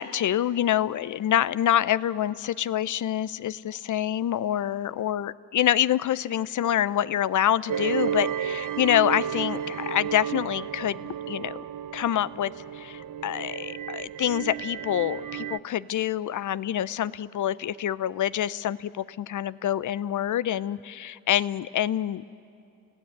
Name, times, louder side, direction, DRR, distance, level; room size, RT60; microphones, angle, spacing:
voice 1, 0.0-11.6 11.9-12.5 12.8-22.3, left 11 dB, 50° left, 18 dB, 0.7 m, -26 dB
sound 1, 7.7-15.6, right 9 dB, 55° right, 0.8 m, -32 dB
30.0 x 16.0 x 8.8 m, 2.6 s
supercardioid pair, 60°, 39 cm